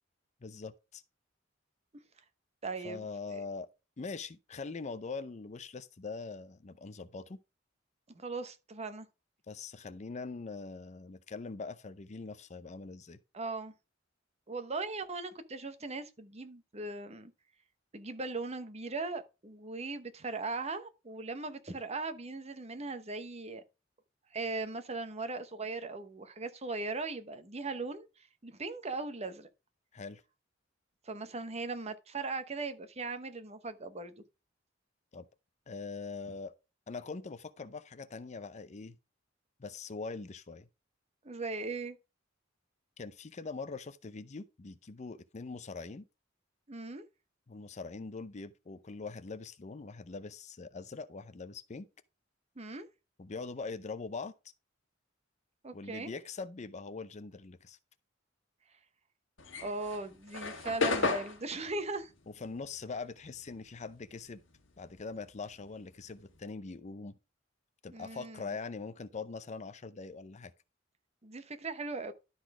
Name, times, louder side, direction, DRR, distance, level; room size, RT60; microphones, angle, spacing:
voice 1, 0.4-1.0 2.8-3.7 4.0-7.4 9.5-13.2 29.9-30.2 35.1-35.3 35.7-36.5 36.9-39.0 39.6-40.7 43.0-46.1 47.5-51.9 53.2-54.3 55.7-57.8 62.4-64.4 64.8-67.2 67.8-70.5, left 4 dB, 35° left, 0.5 m, -42 dB
voice 2, 2.6-3.0 8.1-9.1 13.3-13.7 14.5-17.3 17.9-23.6 24.3-29.5 31.0-34.2 41.2-42.0 46.7-47.0 52.6-52.9 55.6-56.1 59.6-62.1 67.9-68.5 71.2-72.1, right 3 dB, 35° right, 1.0 m, -39 dB
sound 1, 59.4-64.1 64.4-66.4, left 3 dB, 75° left, 1.8 m, -35 dB
12.0 x 4.1 x 4.8 m
head